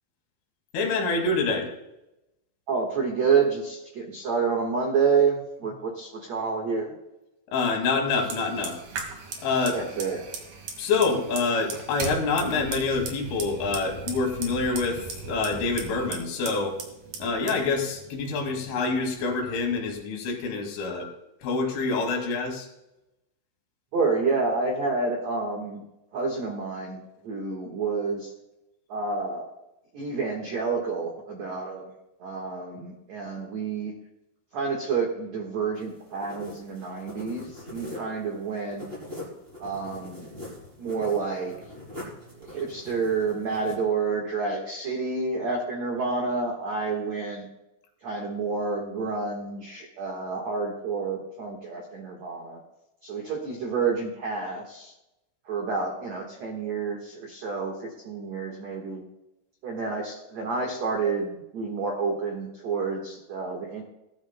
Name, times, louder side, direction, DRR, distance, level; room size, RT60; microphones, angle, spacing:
voice 1, 0.7-1.7 7.5-8.8 9.4-9.8 10.8-16.8 17.2-21.1 21.4-22.7, left 4 dB, 75° left, 2 dB, 4.6 m, -26 dB
voice 2, 2.7-6.9 9.7-10.2 23.9-25.8 26.1-28.3 28.9-29.5 29.9-31.9 32.2-33.9 34.5-38.8 39.6-40.3 40.8-41.6 42.5-47.5 48.0-52.6 53.0-54.9 55.5-59.0 59.6-63.8, right 4 dB, 85° right, 1 dB, 1.5 m, -29 dB
Fire, 8.1-19.9, right 5 dB, 55° right, 2.8 m, -39 dB
sound 1, 35.8-43.8, left 1 dB, 10° right, 4.6 m, -42 dB
18.5 x 12.5 x 2.2 m, 0.92 s
omnidirectional pair, 5.7 m